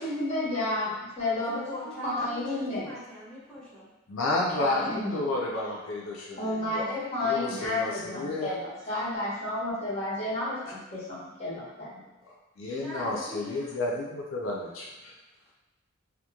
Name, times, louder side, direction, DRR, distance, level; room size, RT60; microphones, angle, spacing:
voice 1, 0.0-2.9 4.5-5.2 6.4-12.0, left 2 dB, 30° left, -9 dB, 0.9 m, -31 dB
voice 2, 1.3-3.9 12.7-13.8, left 1 dB, 5° left, -10 dB, 0.6 m, -41 dB
voice 3, 4.1-7.0 7.2-8.5 12.6-15.1, left 2 dB, 75° left, -3 dB, 0.4 m, -31 dB
2.9 x 2.1 x 2.3 m, 1.1 s
head